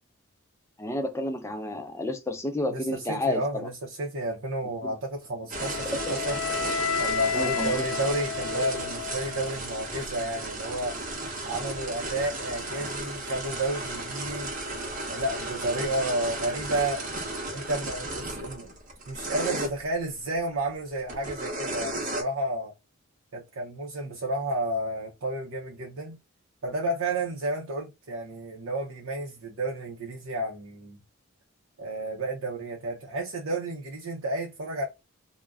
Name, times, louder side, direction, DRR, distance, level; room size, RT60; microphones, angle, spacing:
voice 1, 0.8-3.7 4.8-4.9 7.3-7.8, left 1 dB, 15° left, 0.4 m, -30 dB
voice 2, 2.7-6.4 7.0-11.0 11.4-14.5 15.1-17.0 17.5-18.7 19.1-22.7 23.3-26.2 26.6-31.0 31.8-34.9, right 1 dB, 75° right, 0.6 m, -31 dB
sound 1, 5.5-19.7 21.1-22.2, right 2 dB, 35° right, 0.7 m, -34 dB
Wind instrument woodwind instrument, 5.6-9.6, left 6 dB, 90° left, 0.4 m, -31 dB
2.4 x 2.1 x 3.4 m
head